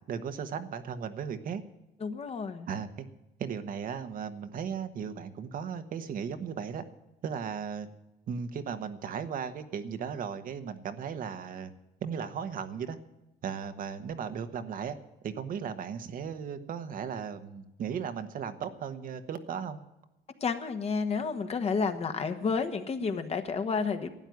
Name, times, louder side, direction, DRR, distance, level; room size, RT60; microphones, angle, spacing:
voice 1, 0.1-1.6 2.7-3.0 3.4-6.8 7.2-7.9 8.3-11.7 12.0-13.0 13.4-15.0 15.2-19.8, right 7 dB, 55° right, 9 dB, 1.2 m, -36 dB
voice 2, 2.0-2.7 20.4-24.1, left 5 dB, 40° left, 7 dB, 1.4 m, -30 dB
12.5 x 9.2 x 9.3 m, 0.95 s
cardioid pair, 110°, 17 cm